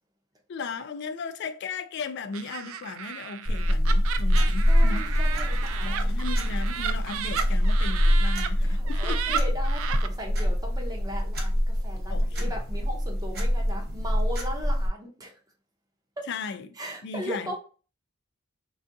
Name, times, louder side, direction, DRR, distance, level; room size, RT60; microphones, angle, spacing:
voice 1, 0.5-5.0 5.8-9.4 12.1-12.5 16.3-16.7 17.0-17.5, left 4 dB, 55° left, 0.3 m, -36 dB
Laughter, 2.3-8.5 8.9-10.1, right 9 dB, 70° right, 0.3 m, -34 dB
sound 1, 3.4-14.9, equal, 50° right, 0.9 m, -25 dB
sound 2, 4.4-8.3, left 1 dB, 85° left, 0.8 m, -49 dB
voice 2, 4.7-6.1 8.6-15.3 16.2-16.3 16.8-17.5, equal, 20° right, 0.6 m, -38 dB
3.5 x 2.4 x 2.6 m
head